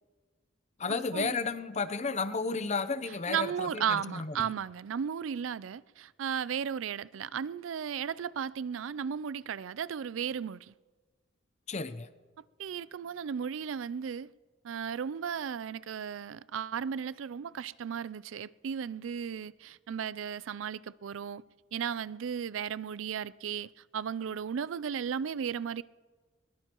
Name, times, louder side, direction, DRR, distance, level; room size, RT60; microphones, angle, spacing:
voice 1, 0.8-4.5 11.7-12.1, left 4 dB, 35° left, 0.7 m, -33 dB
voice 2, 3.3-10.7 12.6-14.3 14.6-21.4 21.7-25.8, right 7 dB, 80° right, 0.4 m, -35 dB
21.5 x 20.0 x 3.0 m
head